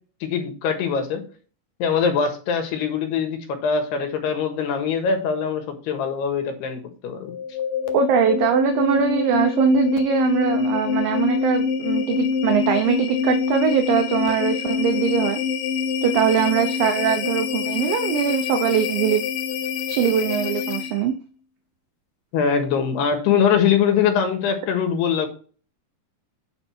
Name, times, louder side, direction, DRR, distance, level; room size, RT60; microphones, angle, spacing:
voice 1, 0.2-1.2 1.8-7.3 22.3-25.3, left 7 dB, 90° left, 6 dB, 3.6 m, -22 dB
sound 1, 7.2-21.1, left 6 dB, 70° left, 2.5 m, -25 dB
voice 2, 7.9-15.4 16.0-19.2 19.9-21.1, right 8 dB, 75° right, 6 dB, 2.4 m, -22 dB
10.0 x 5.3 x 4.5 m, 0.38 s
omnidirectional pair, 4.6 m